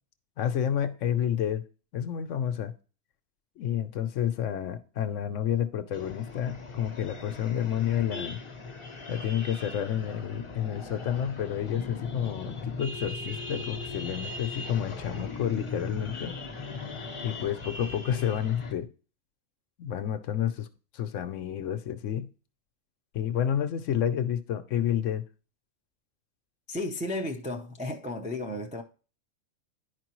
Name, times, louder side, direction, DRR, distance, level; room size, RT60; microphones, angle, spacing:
voice 1, 0.4-1.6 1.9-2.7 3.6-8.4 9.1-16.3 17.2-18.9 19.8-20.7 20.9-22.3 23.1-25.2, left 10 dB, 70° left, 0.9 m, -30 dB
sound 1, 5.9-18.7, left 3 dB, 25° left, 0.7 m, -39 dB
voice 2, 26.7-28.8, left 1 dB, 10° right, 0.3 m, -33 dB
10.5 x 4.8 x 3.0 m
omnidirectional pair, 1.5 m